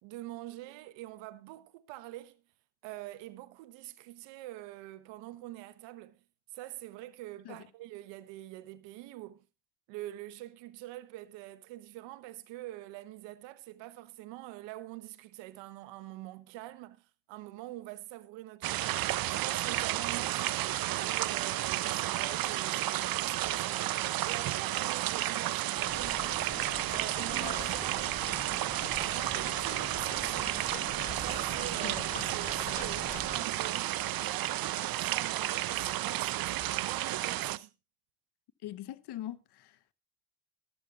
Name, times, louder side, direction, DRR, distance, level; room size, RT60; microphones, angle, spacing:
voice 1, 0.0-2.4 2.8-6.2 6.5-9.4 9.9-20.7 21.0-23.8 24.2-26.6 26.9-28.2 29.0-30.7 31.2-32.0 32.3-37.7, right 16 dB, 85° right, 1.1 m, -45 dB
sound 1, 18.6-37.6, right 14 dB, 55° right, 0.7 m, -32 dB
sound 2, 25.7-33.4, left 5 dB, 20° left, 0.7 m, -44 dB
voice 2, 38.6-39.9, left 13 dB, 65° left, 1.1 m, -42 dB
14.0 x 13.0 x 2.5 m
supercardioid pair, 80°, 43 cm